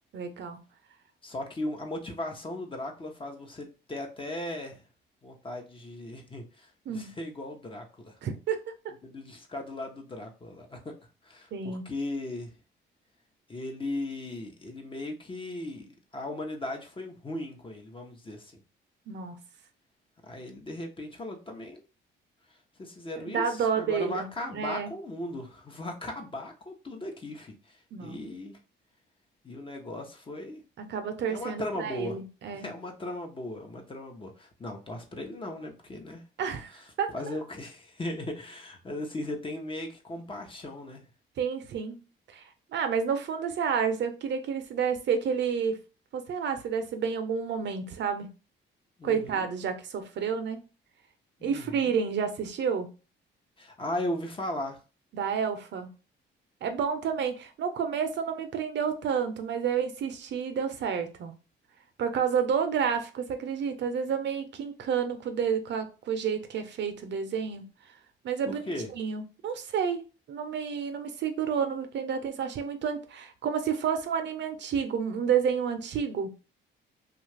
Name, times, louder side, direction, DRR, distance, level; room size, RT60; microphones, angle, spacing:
voice 1, 0.1-0.6 6.9-7.1 8.2-8.6 11.5-11.8 19.1-19.4 23.2-24.9 27.9-28.2 30.8-32.7 36.4-36.7 37.0-37.4 41.4-42.0 42.3-42.4 42.7-45.8 46.1-48.3 49.0-50.6 51.4-52.9 55.1-55.9 56.6-61.3 62.0-67.7 68.2-68.6 68.9-70.0 70.3-76.3, right 7 dB, 65° right, 0.6 m, -30 dB
voice 2, 1.2-4.8 5.2-8.1 9.0-11.0 11.3-12.5 13.5-18.5 20.2-21.8 22.8-27.5 28.0-28.6 29.4-30.6 31.3-32.2 32.5-36.2 37.1-41.0 49.0-49.4 51.4-51.9 53.6-54.8 68.4-68.9, left 1 dB, 25° left, 0.8 m, -37 dB
2.7 x 2.4 x 3.2 m
cardioid pair, 90°, 20 cm